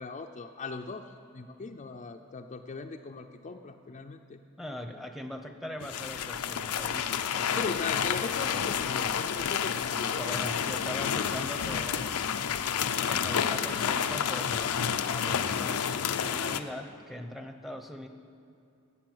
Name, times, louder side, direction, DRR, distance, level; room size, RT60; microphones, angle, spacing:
voice 1, 0.0-4.4 7.5-10.2, left 4 dB, 35° left, 4 dB, 0.5 m, -39 dB
voice 2, 4.6-7.1 7.3-7.8 8.4-8.5 10.2-12.2 13.1-14.8 15.1-18.1, equal, ahead, 5 dB, 0.8 m, -41 dB
sound 1, 5.8-16.6, left 8 dB, 90° left, 0.5 m, -30 dB
12.0 x 7.9 x 7.9 m, 2.7 s
head